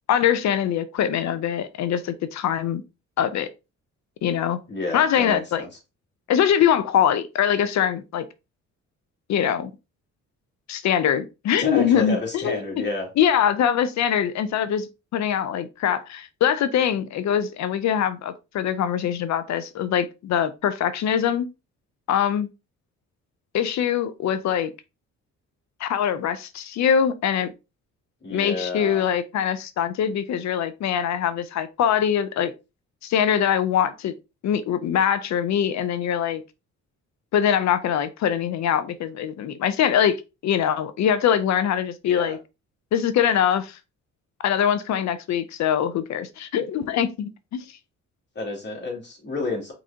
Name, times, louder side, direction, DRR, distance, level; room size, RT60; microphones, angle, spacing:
voice 1, 0.1-2.8 3.2-3.5 4.2-4.6 4.9-5.6 6.3-8.3 9.3-9.7 10.7-12.6 13.2-21.5 22.1-22.5 23.5-24.7 25.8-27.5 28.3-32.5 33.0-34.1 34.4-36.4 37.3-42.4 42.9-43.8 44.4-47.7, left 9 dB, 65° left, 0.6 m, -23 dB
voice 2, 4.7-5.7 11.6-13.1 28.2-29.1 42.0-42.4 48.3-49.7, left 3 dB, 35° left, 2.6 m, -30 dB
4.8 x 3.9 x 2.8 m
cardioid pair, 90°, 30 cm